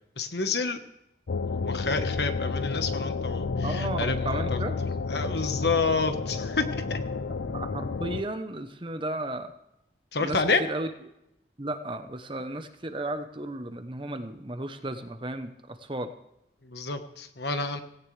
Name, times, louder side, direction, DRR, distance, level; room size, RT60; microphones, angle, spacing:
voice 1, 0.2-0.8 1.4-4.6 5.1-6.6 6.9-7.0 10.1-10.6 16.6-17.8, left 4 dB, 65° left, 8 dB, 1.3 m, -29 dB
sound 1, 1.3-8.2, left 4 dB, 85° left, 0.6 m, -31 dB
voice 2, 3.6-4.8 7.5-9.5 10.2-10.9 11.6-16.1, right 1 dB, 25° right, 8 dB, 0.9 m, -34 dB
17.5 x 17.0 x 3.3 m, 0.86 s
head